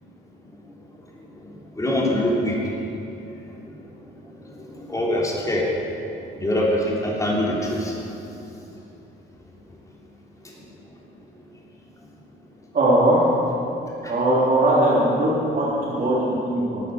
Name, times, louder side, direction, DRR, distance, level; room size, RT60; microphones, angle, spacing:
voice 1, 1.4-2.6 3.7-3.8 4.5-5.7 6.4-7.9 14.0-14.1, left 1 dB, 15° left, -4 dB, 3.5 m, -24 dB
voice 2, 12.7-13.2 14.0-16.8, right 1 dB, 45° right, -8 dB, 3.6 m, -20 dB
15.0 x 9.3 x 6.6 m, 2.9 s
cardioid pair, 90°, 20 cm